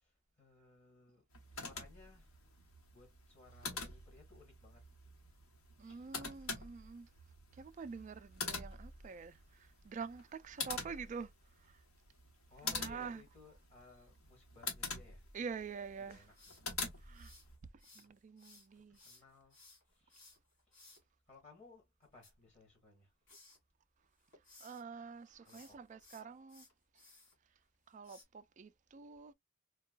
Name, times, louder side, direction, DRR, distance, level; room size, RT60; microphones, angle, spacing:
voice 1, 0.4-1.2 1.5-2.3 2.9-4.8 5.8-6.0 12.5-15.3 16.0-16.6 18.7-19.6 19.9-20.2 20.7-20.8 21.3-23.1 25.4-25.8, left 3 dB, 30° left, 1.6 m, -61 dB
sound 1, 1.3-17.6, left 4 dB, 90° left, 1.2 m, -46 dB
voice 2, 5.8-7.1 7.5-11.3 11.6-11.8 12.6-13.2 15.3-16.2 17.0-17.3 18.0-19.0 24.6-26.7 27.9-29.3, right 5 dB, 35° right, 0.3 m, -47 dB
sound 2, 16.3-18.1 18.4-21.0 22.0-23.0 23.3-23.6 24.0-24.8 25.4-27.3 28.0-28.2, left 3 dB, 60° left, 2.7 m, -61 dB
4.5 x 2.3 x 2.3 m
head